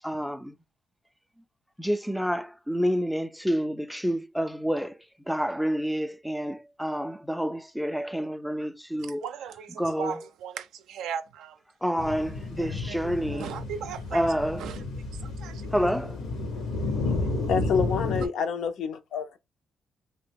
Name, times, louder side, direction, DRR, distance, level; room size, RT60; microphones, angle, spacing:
voice 1, 0.0-0.5 1.8-9.2 9.8-10.2 11.8-13.5 14.1-14.7 15.7-16.2 16.7-16.9, equal, ahead, 0.3 m, -29 dB
voice 2, 9.0-11.6 12.5-14.3 14.6-14.8 15.1-15.7 16.7-16.8 17.2-17.3 18.2-18.3, right 8 dB, 80° right, 0.4 m, -38 dB
sound 1, 12.0-18.3, left 3 dB, 90° left, 1.0 m, -31 dB
voice 3, 17.5-19.4, left 6 dB, 70° left, 0.5 m, -28 dB
2.8 x 2.1 x 3.4 m
cardioid pair, 90°, 0 cm